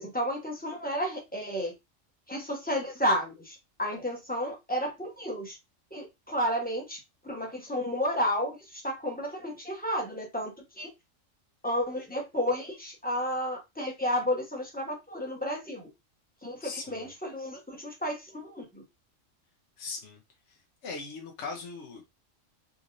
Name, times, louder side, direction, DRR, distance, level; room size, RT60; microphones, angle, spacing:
voice 1, 0.0-1.7 2.3-5.6 5.9-7.0 7.2-10.9 11.6-15.9 16.4-18.8, equal, 10° left, 0.9 m, -32 dB
voice 2, 16.6-17.1 19.8-20.2 20.5-22.2, left 4 dB, 65° left, 1.1 m, -40 dB
3.8 x 3.1 x 2.5 m
omnidirectional pair, 1.4 m